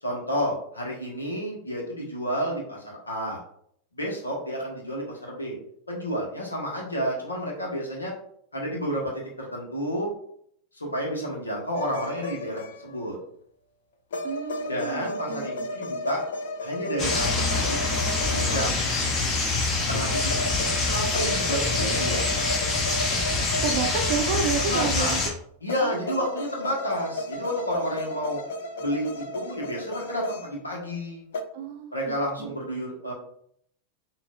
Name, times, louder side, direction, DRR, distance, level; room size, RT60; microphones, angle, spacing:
voice 1, 0.0-3.4 3.9-5.6 5.9-8.1 8.5-10.1 10.7-13.2 14.7-16.2 16.6-17.8 18.3-19.1 19.9-22.2 24.5-25.2 25.6-28.4 28.8-31.3 31.9-33.1, equal, 80° left, -2 dB, 1.2 m, -30 dB
sound 1, 11.8-13.1 14.1-19.0 19.9-24.9 25.7-31.0 31.3-31.4, left 1 dB, 60° left, 0.5 m, -34 dB
voice 2, 14.2-15.7 23.6-25.2 25.8-26.2 31.5-32.5, right 6 dB, 50° right, 6 dB, 0.5 m, -31 dB
sound 2, 17.0-25.3, left 3 dB, 30° left, 1.0 m, -25 dB
6.0 x 2.5 x 2.4 m, 0.67 s
figure-of-eight pair, 90°, 0 cm